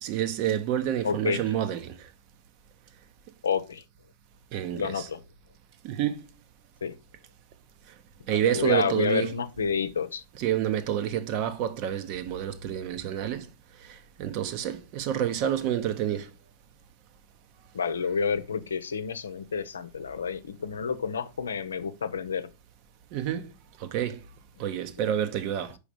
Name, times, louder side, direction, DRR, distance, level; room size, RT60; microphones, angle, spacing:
voice 1, 0.0-2.1 4.5-5.1 5.8-6.2 8.3-9.3 10.4-13.5 13.8-16.3 23.1-23.5 23.8-24.2 24.6-25.8, right 10 dB, 50° right, 1.0 m, -29 dB
voice 2, 1.0-1.4 3.4-3.8 4.7-5.2 6.8-7.0 8.3-10.2 17.7-22.5, left 6 dB, 85° left, 0.6 m, -29 dB
5.0 x 5.0 x 5.0 m
hypercardioid pair, 100°, 0 cm